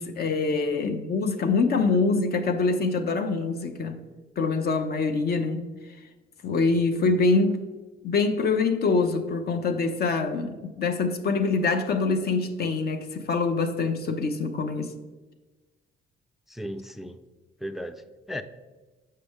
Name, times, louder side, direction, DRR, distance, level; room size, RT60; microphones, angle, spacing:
voice 1, 0.0-4.0 4.4-5.6 6.4-7.6 8.0-14.9, left 4 dB, 50° left, 0.6 m, -25 dB
voice 2, 16.5-17.2 17.6-18.4, equal, ahead, 0.3 m, -36 dB
6.7 x 5.4 x 3.5 m
cardioid pair, 90°, 20 cm